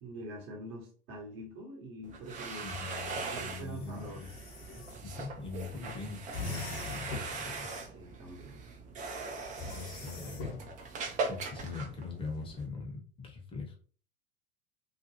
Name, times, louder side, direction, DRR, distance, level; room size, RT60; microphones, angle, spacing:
voice 1, 0.0-2.7 3.2-4.3 7.9-8.6, right 1 dB, 45° right, 0 dB, 1.1 m, -45 dB
sound 1, 2.0-12.7, right 4 dB, 25° right, 0.5 m, -41 dB
voice 2, 2.6-4.3 4.7-7.7 9.7-10.7 11.2-13.8, left 4 dB, 15° left, 1 dB, 0.8 m, -42 dB
sound 2, 2.9-5.0 6.3-7.4 9.6-10.7, left 4 dB, 50° left, 0.9 m, -42 dB
2.5 x 2.2 x 2.8 m, 0.43 s
figure-of-eight pair, 85°, 31 cm